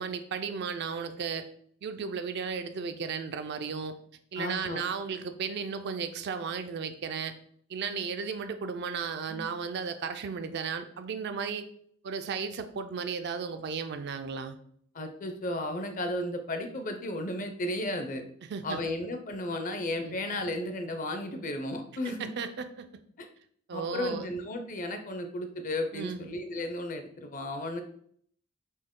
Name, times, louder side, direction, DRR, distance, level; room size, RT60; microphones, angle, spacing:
voice 1, 0.0-1.5 1.8-4.0 4.3-7.3 7.7-11.7 12.0-14.6 18.5-18.8 20.0-20.2 22.0-22.9 23.7-24.3 25.9-26.3, right 6 dB, 55° right, 9 dB, 0.4 m, -35 dB
voice 2, 4.4-4.8 9.3-9.4 14.9-18.2 18.6-22.3 23.2-23.3 23.7-27.8, left 1 dB, 40° left, 6 dB, 0.5 m, -34 dB
4.4 x 2.8 x 3.6 m, 0.62 s
head